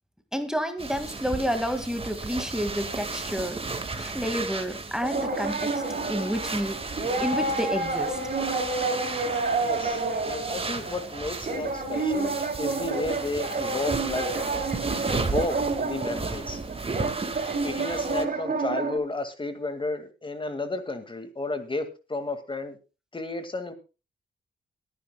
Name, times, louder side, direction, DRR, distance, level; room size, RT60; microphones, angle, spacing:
voice 1, 0.3-3.6 4.0-5.8 6.1-6.8 7.0-8.2, equal, 5° right, 8 dB, 2.0 m, -30 dB
sound 1, 0.8-18.3, right 3 dB, 30° right, 1.9 m, -35 dB
sound 2, 5.0-19.0, right 3 dB, 45° right, 5.0 m, -29 dB
voice 2, 9.6-14.3 15.1-16.6 17.6-22.8 23.1-23.7, left 2 dB, 25° left, 9 dB, 2.1 m, -32 dB
21.5 x 10.0 x 2.3 m, 0.31 s
cardioid pair, 80°, 19 cm